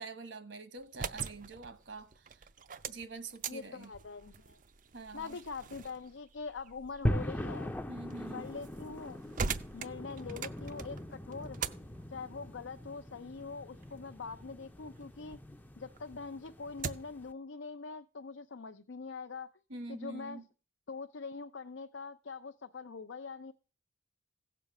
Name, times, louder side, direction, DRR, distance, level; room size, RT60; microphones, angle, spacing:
voice 1, 0.0-2.1 2.9-3.9 4.9-5.4 7.9-8.5 19.7-20.4, right 3 dB, 70° right, 1.3 m, -45 dB
sound 1, 0.8-15.5 15.9-17.3, right 5 dB, 40° right, 0.5 m, -44 dB
voice 2, 3.5-4.6 5.1-7.7 8.3-9.2 9.7-11.6 12.1-15.4 15.8-19.5 19.9-20.4 20.9-23.5, left 4 dB, 70° left, 0.6 m, -43 dB
sound 2, 7.1-17.3, equal, 10° left, 0.5 m, -40 dB
16.0 x 6.9 x 5.9 m
head